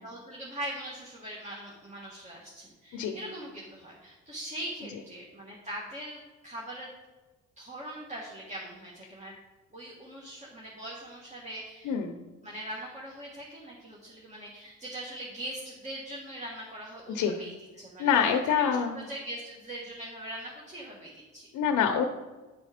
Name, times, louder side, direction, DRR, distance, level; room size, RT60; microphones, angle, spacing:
voice 1, 0.0-6.9 7.6-9.3 9.7-11.9 12.4-17.5 17.8-18.3 18.6-21.5, right 1 dB, 25° right, -4 dB, 1.6 m, -41 dB
voice 2, 11.8-12.2 17.1-17.4 18.0-19.0 21.5-22.0, left 7 dB, 85° left, 5 dB, 0.7 m, -26 dB
10.0 x 4.3 x 5.0 m, 1.2 s
cardioid pair, 90°, 30 cm